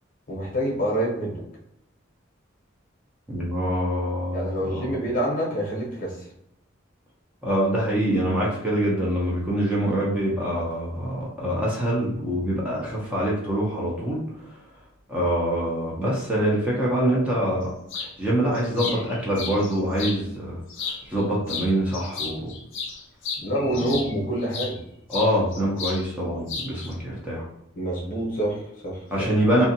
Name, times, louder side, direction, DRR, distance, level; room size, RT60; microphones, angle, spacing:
voice 1, 0.3-1.4 4.3-6.3 23.4-24.8 27.8-29.3, right 1 dB, 40° left, -3 dB, 0.9 m, -27 dB
voice 2, 3.3-5.0 7.4-14.6 15.1-17.7 18.0-22.5 23.7-24.0 25.1-27.5 29.1-29.7, right 1 dB, 5° right, -6 dB, 0.6 m, -25 dB
sound 1, 17.9-18.1 18.5-20.2 20.7-21.2 21.5-24.7 25.1-26.0 26.3-26.9, left 5 dB, 65° left, 0.6 m, -33 dB
2.6 x 2.4 x 2.7 m, 0.76 s
head